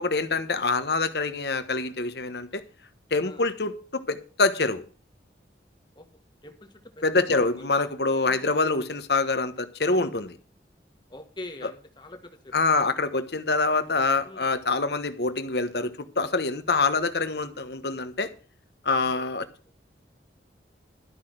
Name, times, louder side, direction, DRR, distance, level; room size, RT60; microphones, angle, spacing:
voice 1, 0.0-2.6 3.1-4.8 7.0-10.3 12.5-18.3 18.8-19.5, left 3 dB, 65° left, 10 dB, 1.2 m, -25 dB
voice 2, 5.9-6.7 7.0-7.1 7.3-7.7 8.2-8.6 11.1-12.6 14.2-14.5, left 1 dB, 25° left, 5 dB, 1.6 m, -44 dB
12.5 x 6.0 x 7.9 m, 0.38 s
head